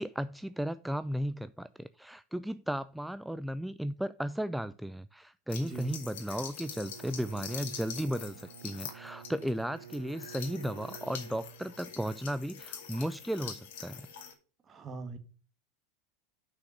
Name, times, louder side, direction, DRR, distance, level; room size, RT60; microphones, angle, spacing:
voice 1, 0.0-14.1, equal, 5° right, 0.4 m, -35 dB
sound 1, 5.5-14.3, left 8 dB, 65° left, 1.9 m, -45 dB
voice 2, 5.6-6.0 14.7-15.2, right 4 dB, 30° right, 1.7 m, -41 dB
Bowed string instrument, 6.6-12.0, right 11 dB, 70° right, 0.4 m, -50 dB
6.3 x 5.7 x 6.4 m
hypercardioid pair, 85°, 0 cm